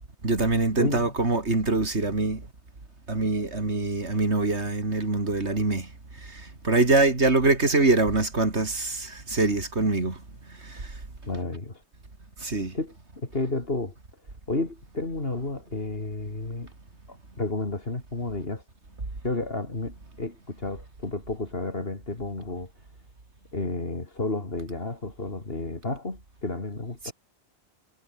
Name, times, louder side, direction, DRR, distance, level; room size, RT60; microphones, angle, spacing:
voice 1, 0.2-2.5 3.1-5.9 6.2-10.2 10.6-10.9 12.4-12.8 27.0-27.1, right 3 dB, 85° right, 3.7 m, -24 dB
voice 2, 0.8-1.1 11.3-11.8 12.7-14.0 14.5-16.7 17.1-18.6 19.2-22.7 23.5-27.1, left 2 dB, 60° left, 3.4 m, -31 dB
omnidirectional pair, 1.1 m